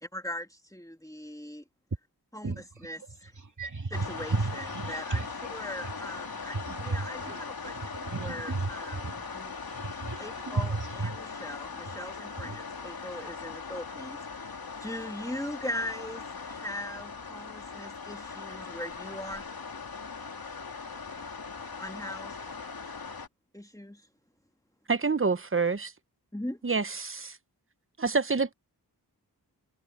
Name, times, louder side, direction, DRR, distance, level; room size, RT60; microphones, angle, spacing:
voice 1, 0.0-1.6 2.3-2.5 2.8-3.3 3.9-7.8 8.2-9.5 10.2-10.7 11.0-19.4 21.8-22.4 23.5-24.1 26.3-26.6, left 1 dB, 10° left, 2.1 m, -40 dB
voice 2, 2.4-5.5 5.8-5.9 6.3-9.3 9.6-11.5 12.4-12.6, right 3 dB, 50° right, 2.5 m, -35 dB
sound 1, 3.9-23.3, left 5 dB, 65° left, 2.4 m, -40 dB
voice 3, 24.9-25.9 26.6-27.4 28.0-28.5, right 4 dB, 35° right, 1.0 m, -27 dB
wide cardioid pair, 50°, 38 cm